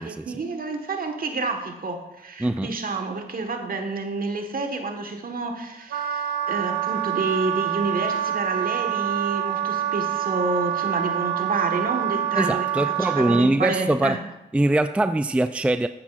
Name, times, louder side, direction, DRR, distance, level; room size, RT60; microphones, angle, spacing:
voice 1, 0.0-14.2, right 3 dB, 55° right, 1.5 m, -29 dB
Wind instrument woodwind instrument, 5.9-13.5, right 10 dB, 75° right, 0.5 m, -26 dB
voice 2, 12.4-14.2 14.5-15.9, right 1 dB, 5° right, 0.4 m, -22 dB
13.0 x 8.1 x 2.5 m
cardioid pair, 50°, 18 cm